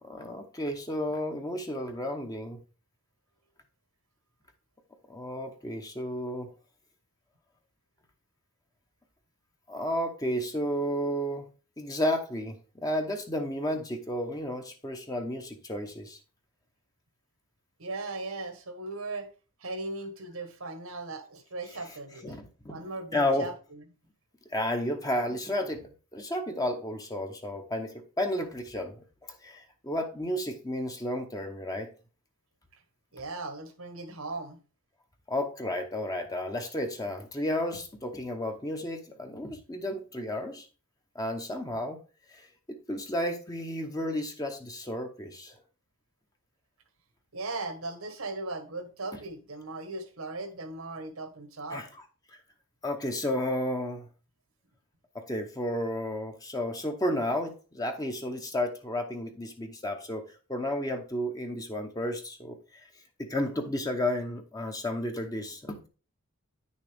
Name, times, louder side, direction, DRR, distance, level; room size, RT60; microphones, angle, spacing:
voice 1, 0.0-2.6 5.1-6.5 9.7-11.5 11.8-16.2 22.2-22.8 23.1-23.5 24.5-29.0 29.4-31.9 35.3-40.7 41.1-42.0 42.3-45.5 51.7-51.8 52.8-54.1 55.1-62.8 63.2-65.9, left 1 dB, 15° left, 0.8 m, -32 dB
voice 2, 17.8-19.3 19.6-22.3 22.7-23.8 33.1-34.6 47.3-51.9, right 2 dB, 80° right, 1.4 m, -38 dB
9.5 x 6.4 x 3.5 m
head